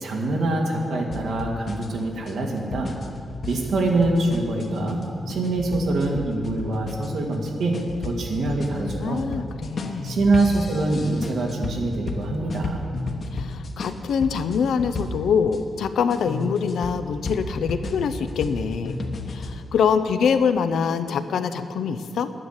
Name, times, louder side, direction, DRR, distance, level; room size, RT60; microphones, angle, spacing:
voice 1, 0.0-2.9 3.4-5.0 5.3-9.2 10.0-12.8, right 2 dB, 80° right, 0 dB, 2.2 m, -24 dB
sound 1, 1.1-15.6 16.1-19.6, left 2 dB, 50° left, 1.2 m, -33 dB
voice 2, 8.7-10.2 13.3-19.0 19.3-22.3, left 6 dB, 90° left, 10 dB, 0.7 m, -24 dB
10.5 x 9.9 x 8.2 m, 2.4 s
wide cardioid pair, 120°, 0 cm